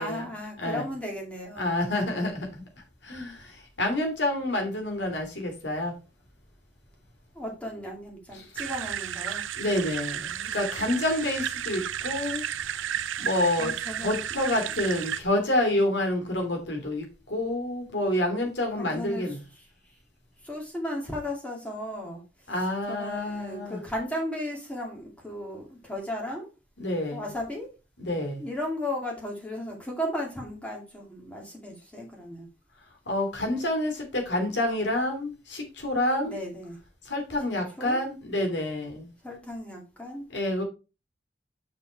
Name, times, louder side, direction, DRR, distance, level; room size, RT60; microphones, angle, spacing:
voice 1, 0.0-1.8 7.3-9.4 13.6-14.2 18.8-19.4 19.8-20.0 20.4-22.5 22.9-26.5 27.1-27.7 28.4-32.5 36.2-36.8 37.8-38.0 39.2-40.3, left 1 dB, 5° left, 2.4 m, -35 dB
voice 2, 1.6-2.6 3.0-5.9 9.6-12.4 13.2-13.7 14.0-19.4 22.5-23.8 26.8-27.2 28.0-28.4 33.1-36.4 37.0-39.1 40.3-40.6, left 1 dB, 65° left, 3.1 m, -28 dB
sound 1, 8.6-15.2, right 9 dB, 90° right, 0.5 m, -33 dB
6.6 x 5.4 x 4.6 m
head